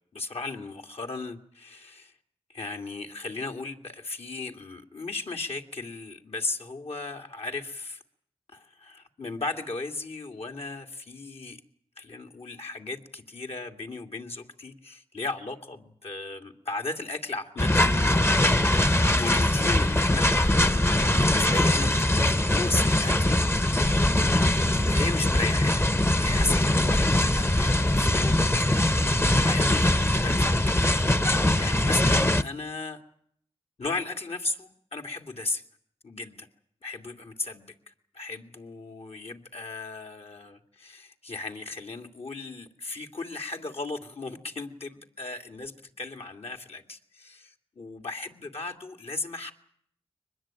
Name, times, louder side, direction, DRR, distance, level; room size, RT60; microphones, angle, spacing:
voice 1, 0.1-2.2 2.5-8.0 8.5-11.6 12.0-24.6 24.9-25.9 26.2-28.5 29.4-30.7 31.2-33.0 33.8-35.6 36.0-36.5 36.8-49.5, left 3 dB, 65° left, 3 dB, 2.7 m, -36 dB
sound 1, 17.6-32.4, left 1 dB, 20° left, 1.0 m, -22 dB
23.5 x 20.5 x 9.0 m, 0.66 s
cardioid pair, 45°, 11 cm